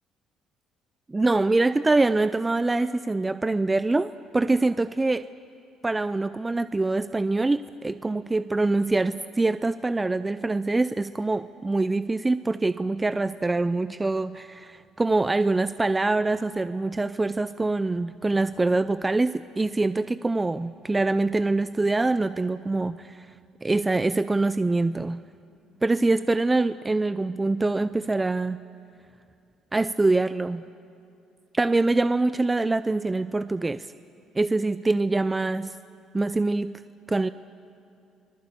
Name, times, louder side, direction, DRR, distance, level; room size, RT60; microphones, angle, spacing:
voice 1, 1.1-5.3 5.8-23.3 23.6-25.2 25.8-28.6 29.7-30.6 31.5-33.9 34.3-35.7 36.1-36.7 37.1-37.3, right 2 dB, 20° right, 13 dB, 0.5 m, -24 dB
25.5 x 21.0 x 8.4 m, 2.7 s
supercardioid pair, 80°, 0 cm